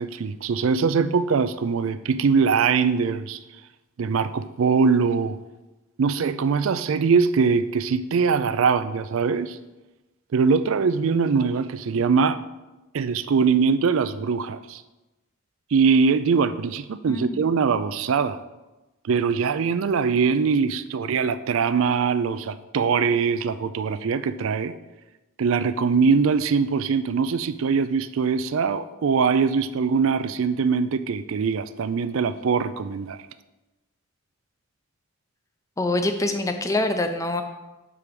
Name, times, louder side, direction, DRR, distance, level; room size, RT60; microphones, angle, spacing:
voice 1, 0.0-3.4 4.0-5.4 6.0-9.6 10.3-12.4 12.9-14.8 15.7-18.4 19.0-24.7 25.4-33.2, right 5 dB, 70° right, 13 dB, 0.4 m, -22 dB
voice 2, 17.1-17.5 35.8-37.4, left 2 dB, 15° left, 7 dB, 0.5 m, -25 dB
7.0 x 4.8 x 5.2 m, 1.1 s
head